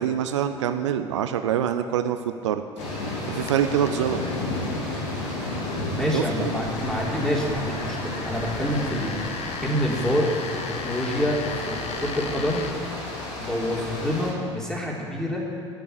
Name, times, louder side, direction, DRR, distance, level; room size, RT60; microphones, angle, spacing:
voice 1, 0.0-2.2 2.4-2.6 3.3-4.2 6.1-6.6, right 9 dB, 75° right, 9 dB, 0.6 m, -25 dB
sound 1, 2.8-14.3, left 2 dB, 70° left, 2.9 m, -32 dB
sound 2, 3.4-12.7, left 6 dB, 40° left, 1.1 m, -39 dB
sound 3, 4.7-9.7, right 1 dB, 10° right, 3.6 m, -40 dB
voice 2, 5.9-9.1 9.6-11.4 11.7-12.6 13.4-15.4, equal, 5° left, -3 dB, 3.7 m, -27 dB
15.0 x 6.9 x 8.3 m, 2.4 s
figure-of-eight pair, 65°, 16 cm